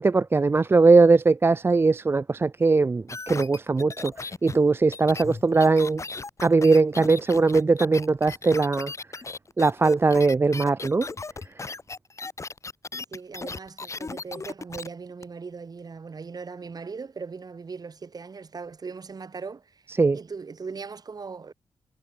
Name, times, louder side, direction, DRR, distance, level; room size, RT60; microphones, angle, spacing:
voice 1, 0.0-6.0 6.4-8.9 9.6-11.1 20.0-20.2, right 3 dB, 25° right, 0.5 m, -20 dB
sound 1, 3.1-14.9 15.2-15.3, left 4 dB, 35° left, 2.5 m, -37 dB
voice 2, 12.9-21.5, right 5 dB, 45° right, 6.9 m, -39 dB
wide cardioid pair, 115°, 9 cm